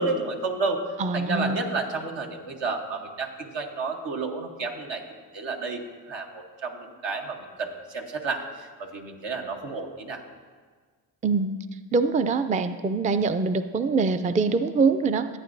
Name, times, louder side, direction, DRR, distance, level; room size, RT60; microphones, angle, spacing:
voice 1, 0.0-0.8 1.1-5.0 5.3-10.2, right 3 dB, 75° right, 2 dB, 1.2 m, -31 dB
voice 2, 1.0-1.6 11.2-11.5 11.9-15.3, right 4 dB, 20° right, 10 dB, 0.4 m, -24 dB
14.0 x 8.8 x 2.6 m, 1.5 s
supercardioid pair, 55°, 44 cm